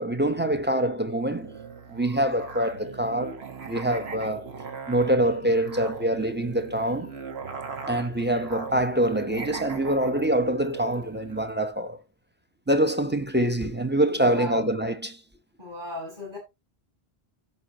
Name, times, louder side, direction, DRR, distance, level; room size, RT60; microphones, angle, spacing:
voice 1, 0.0-1.5 1.9-4.5 4.9-7.1 7.9-12.0 12.7-15.2, right 1 dB, 10° right, 0.7 m, -25 dB
Musical instrument, 1.4-11.5, right 5 dB, 85° right, 1.6 m, -39 dB
voice 2, 14.1-14.7 15.6-16.4, left 2 dB, 45° right, 6.6 m, -36 dB
14.5 x 5.4 x 2.8 m
omnidirectional pair, 1.0 m